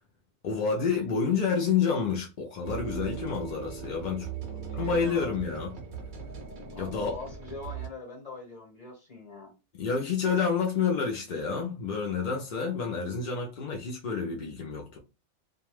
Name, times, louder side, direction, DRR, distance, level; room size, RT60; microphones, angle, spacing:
voice 1, 0.4-4.3 4.7-5.7 6.8-7.1 9.7-15.0, left 6 dB, 60° left, 0.5 m, -29 dB
sound 1, 2.6-7.9, right 7 dB, 50° right, 0.6 m, -39 dB
voice 2, 4.5-5.4 6.7-9.5, left 3 dB, 35° left, 1.1 m, -43 dB
2.3 x 2.2 x 3.0 m
omnidirectional pair, 1.3 m